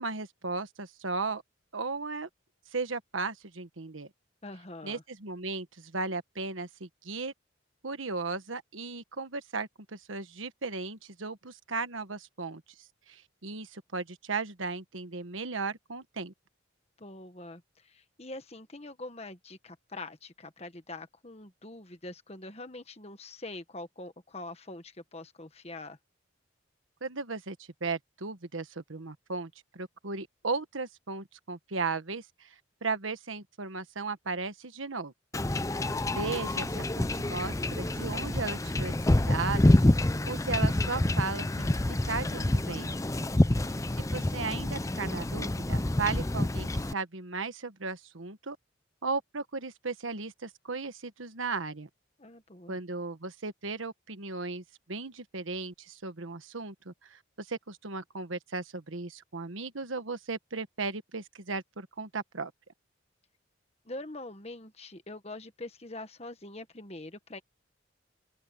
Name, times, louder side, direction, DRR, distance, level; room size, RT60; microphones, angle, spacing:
voice 1, 0.0-1.4 1.7-2.3 2.7-4.1 4.8-7.3 7.8-12.6 13.1-16.3 27.0-32.5 32.8-35.1 36.1-42.9 44.0-48.6 49.0-51.9 52.7-62.5, right 4 dB, 85° right, 1.4 m, -36 dB
voice 2, 4.4-5.0 17.0-26.0 35.6-35.8 43.3-43.9 52.2-52.8 63.8-67.4, left 2 dB, 30° left, 1.6 m, -44 dB
Wind / Ocean / Boat Water vehicle, 35.3-46.9, left 1 dB, 15° left, 0.5 m, -27 dB
open air
head